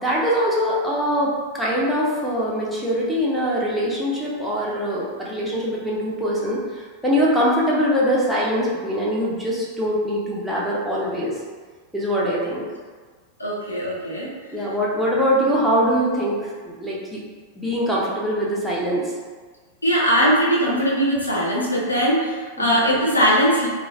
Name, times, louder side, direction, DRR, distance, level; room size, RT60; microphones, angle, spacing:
voice 1, 0.0-11.3 11.9-12.6 14.5-17.2 17.6-19.0 22.6-22.8, equal, ahead, -7 dB, 0.6 m, -23 dB
voice 2, 13.4-14.3 19.8-23.7, equal, 80° left, -4 dB, 0.5 m, -20 dB
3.1 x 2.3 x 2.3 m, 1.5 s
figure-of-eight pair, 90°, 0 cm